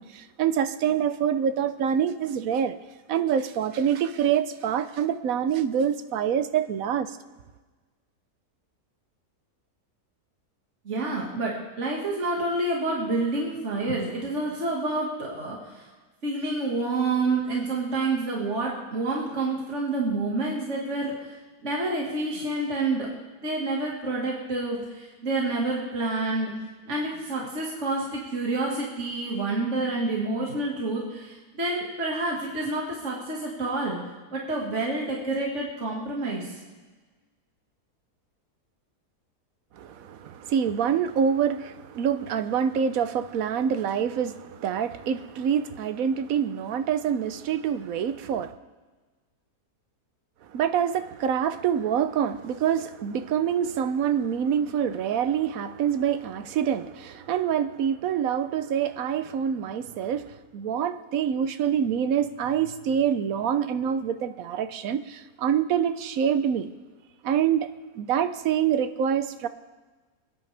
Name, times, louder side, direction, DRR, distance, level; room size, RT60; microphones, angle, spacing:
voice 1, 0.0-2.8 3.1-7.2 39.7-48.5 50.4-66.7 67.2-67.7 67.9-69.5, right 8 dB, 65° right, 1.0 m, -26 dB
voice 2, 10.9-15.9 16.2-21.4 21.6-23.1 23.4-26.5 26.9-34.0 34.3-36.6, right 2 dB, 45° right, 2.2 m, -28 dB
26.5 x 9.9 x 3.4 m
omnidirectional pair, 1.7 m